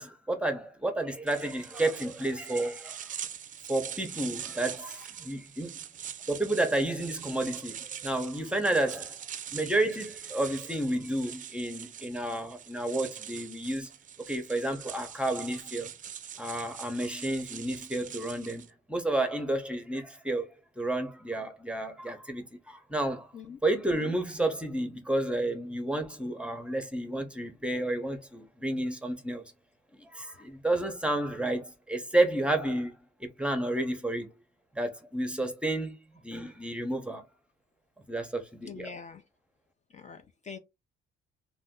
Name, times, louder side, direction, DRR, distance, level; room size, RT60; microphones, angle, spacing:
voice 1, 0.0-3.1 3.7-5.8 6.3-9.2 9.5-13.9 14.3-15.9 16.4-23.3 23.6-29.4 30.0-34.3 34.7-36.0 36.2-37.2 38.1-38.9, right 1 dB, 5° right, 0.7 m, -31 dB
sound 1, 1.3-18.7, right 9 dB, 40° right, 0.4 m, -43 dB
voice 2, 38.6-39.2 39.9-40.6, left 6 dB, 35° left, 0.5 m, -44 dB
2.6 x 2.3 x 3.6 m
cardioid pair, 90°, 20 cm